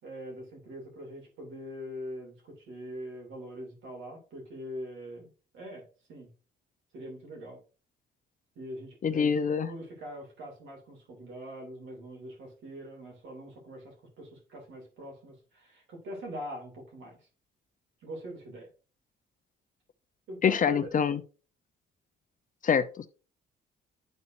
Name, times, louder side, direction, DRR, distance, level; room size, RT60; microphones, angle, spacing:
voice 1, 0.0-6.3 6.9-7.6 8.5-9.3 9.6-17.2 18.0-18.7 20.3-20.9, equal, 80° right, 2.9 m, -43 dB
voice 2, 9.0-9.7 20.4-21.2 22.6-23.1, left 7 dB, 40° left, 0.6 m, -25 dB
11.5 x 4.1 x 2.6 m
cardioid pair, 90°, 20 cm